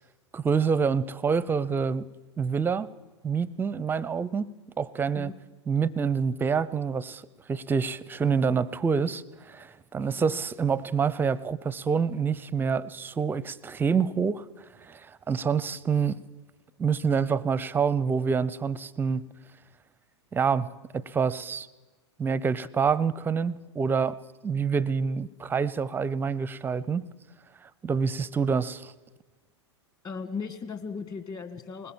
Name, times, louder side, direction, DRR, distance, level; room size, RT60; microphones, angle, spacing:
voice 1, 0.3-2.1 2.4-2.9 3.2-5.3 5.7-7.2 7.5-14.4 14.8-16.2 16.8-19.3 20.3-21.7 22.2-24.2 24.4-27.1 27.8-28.9, right 6 dB, 15° right, 21 dB, 0.6 m, -27 dB
voice 2, 30.0-31.9, left 5 dB, 25° left, 10 dB, 1.8 m, -37 dB
20.5 x 19.5 x 7.5 m, 1.2 s
figure-of-eight pair, 100°, 15 cm